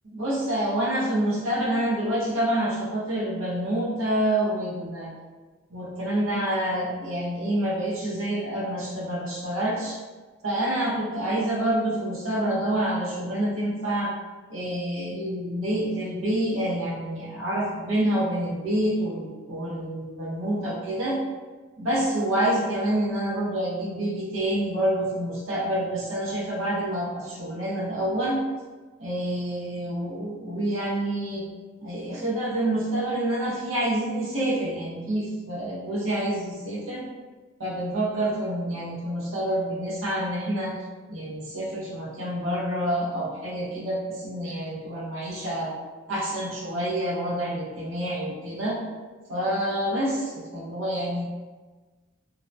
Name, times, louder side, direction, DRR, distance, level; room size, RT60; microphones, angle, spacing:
voice 1, 0.1-5.1 5.7-10.0 10.4-14.1 14.5-21.2 21.8-28.4 29.0-31.5 31.8-37.1 37.6-40.8 41.1-45.7 46.1-48.8 49.3-51.2, right 1 dB, 85° right, -4 dB, 0.7 m, -27 dB
2.7 x 2.1 x 2.5 m, 1.3 s
head